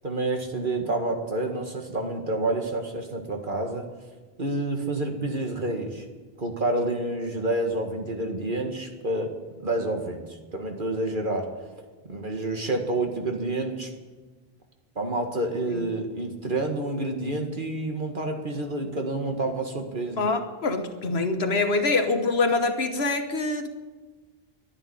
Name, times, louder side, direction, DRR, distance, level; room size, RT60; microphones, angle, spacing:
voice 1, 0.0-3.9 4.4-6.0 6.4-9.3 9.6-11.5 12.1-13.9 15.0-20.2, right 2 dB, 55° right, 3 dB, 2.0 m, -28 dB
voice 2, 20.2-23.7, left 3 dB, 80° left, 7 dB, 1.5 m, -25 dB
11.5 x 11.0 x 9.9 m, 1.3 s
omnidirectional pair, 1.0 m